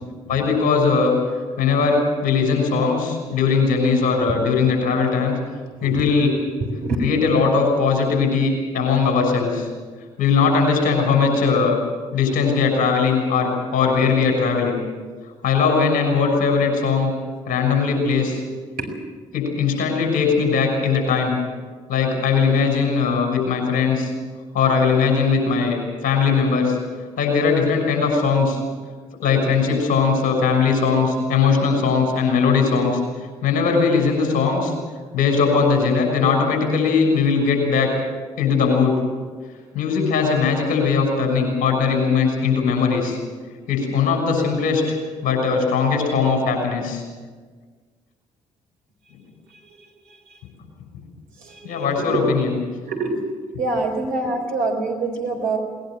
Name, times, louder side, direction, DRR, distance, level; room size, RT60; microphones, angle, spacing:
voice 1, 0.3-5.3 5.8-6.4 7.0-9.7 10.2-11.7 12.1-14.8 15.4-17.1 17.4-18.4 19.3-21.3 21.9-24.1 24.5-26.8 27.2-28.6 29.2-33.0 33.4-34.7 35.1-37.9 38.4-39.0 39.7-43.2 43.7-47.0 51.6-52.6, left 5 dB, 60° left, 3 dB, 6.5 m, -19 dB
voice 2, 6.6-7.1 18.8-18.9 51.4-52.2 52.8-53.1 53.6-55.6, right 3 dB, 65° right, 2 dB, 4.6 m, -25 dB
20.0 x 20.0 x 7.7 m, 1.5 s
figure-of-eight pair, 45°, 16 cm